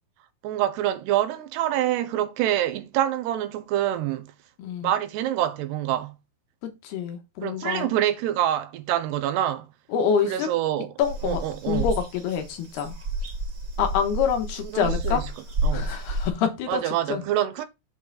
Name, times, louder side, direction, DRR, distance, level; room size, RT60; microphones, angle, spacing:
voice 1, 0.4-4.3 4.8-6.2 7.4-9.7 10.2-10.9 11.2-11.9 14.7-15.3 15.6-15.9 16.7-17.7, right 12 dB, 85° right, 3.0 m, -26 dB
voice 2, 4.6-4.9 6.6-7.9 9.9-10.5 11.0-11.4 11.7-12.9 13.8-15.2 15.7-17.2, left 7 dB, 80° left, 3.4 m, -26 dB
sound 1, 11.0-16.3, right 1 dB, 35° right, 2.6 m, -30 dB
8.2 x 5.6 x 4.1 m
omnidirectional pair, 4.7 m